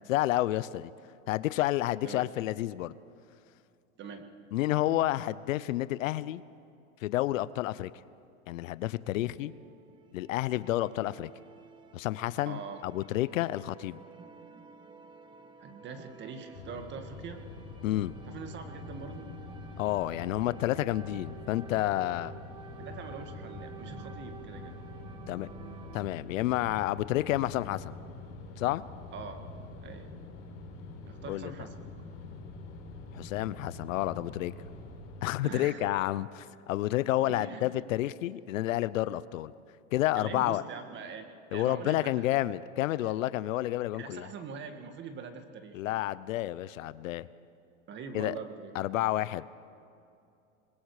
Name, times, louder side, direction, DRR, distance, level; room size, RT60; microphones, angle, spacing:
voice 1, 0.1-0.9 1.3-2.9 4.5-6.4 7.0-7.9 8.5-9.5 10.1-11.3 11.9-14.0 17.8-18.1 19.8-22.3 25.3-25.5 25.9-27.9 28.6-28.8 31.3-31.5 33.1-34.5 35.2-39.5 39.9-40.6 41.5-44.3 45.7-47.3 48.1-48.4 48.7-49.5, left 15 dB, 75° left, 17 dB, 0.7 m, -30 dB
sound 1, 9.2-26.1, right 7 dB, 10° right, 0.6 m, -51 dB
voice 2, 12.5-12.8 15.6-17.5 18.3-19.3 22.8-24.8 29.1-29.4 29.8-30.2 31.1-31.9 35.4-35.9 37.3-37.7 40.2-41.2 41.5-42.4 43.0-43.1 44.0-45.9 47.9-48.7, right 5 dB, 25° right, 7 dB, 1.8 m, -43 dB
sound 2, 16.5-35.2, left 3 dB, 40° left, 4.9 m, -45 dB
27.0 x 21.0 x 4.9 m, 2.6 s
supercardioid pair, 140°, 40 cm